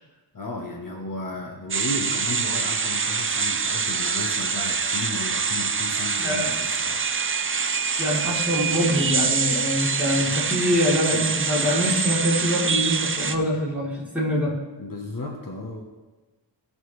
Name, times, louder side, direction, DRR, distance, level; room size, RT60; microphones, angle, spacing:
voice 1, 0.3-7.1 14.8-15.8, left 2 dB, 50° left, 0 dB, 1.1 m, -34 dB
sound 1, 1.7-13.4, right 5 dB, 30° right, 0.5 m, -25 dB
voice 2, 8.0-14.5, equal, 5° right, -6 dB, 3.3 m, -24 dB
16.5 x 6.6 x 3.2 m, 1.2 s
wide cardioid pair, 95°, 44 cm